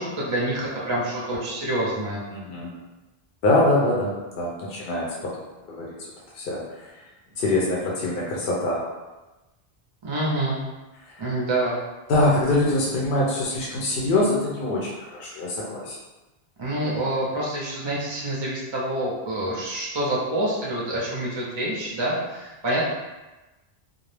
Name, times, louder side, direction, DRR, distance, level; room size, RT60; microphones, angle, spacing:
voice 1, 0.0-2.2 10.0-10.6 11.2-11.8 16.6-22.8, right 1 dB, 40° right, -5 dB, 0.4 m, -27 dB
voice 2, 2.3-2.7 3.4-5.3 5.7-7.0 7.4-8.8 11.0-11.2 12.1-16.0, left 2 dB, 65° left, -4 dB, 0.7 m, -24 dB
2.4 x 2.0 x 3.1 m, 1.1 s
omnidirectional pair, 1.0 m